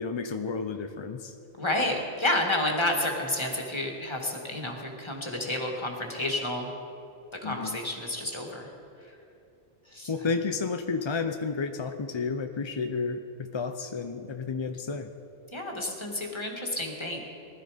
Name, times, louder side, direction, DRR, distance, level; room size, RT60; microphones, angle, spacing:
voice 1, 0.0-1.3 7.4-7.8 10.1-15.1, left 4 dB, 40° left, 7 dB, 0.4 m, -31 dB
voice 2, 1.6-6.7 7.3-8.7 9.9-10.1 15.5-17.3, left 1 dB, 25° left, 1 dB, 2.0 m, -30 dB
20.0 x 12.5 x 5.0 m, 2.9 s
omnidirectional pair, 1.2 m